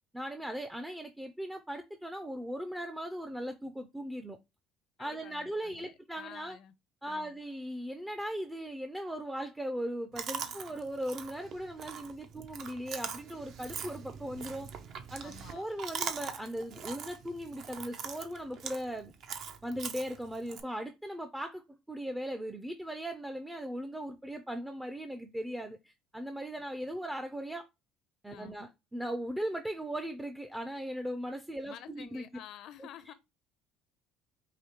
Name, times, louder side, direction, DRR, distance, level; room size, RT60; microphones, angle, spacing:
voice 1, 0.1-4.4 5.0-6.6 7.0-14.7 15.1-19.1 19.6-27.7 28.2-32.3, equal, 5° right, 0.4 m, -38 dB
voice 2, 5.0-6.7 7.0-7.4 10.4-10.7 15.2-15.7 28.3-28.6 31.6-33.1, left 10 dB, 60° left, 0.5 m, -51 dB
Chewing mastication, 10.2-20.6, right 7 dB, 60° right, 0.6 m, -42 dB
4.9 x 2.7 x 2.9 m
cardioid pair, 115°, 0 cm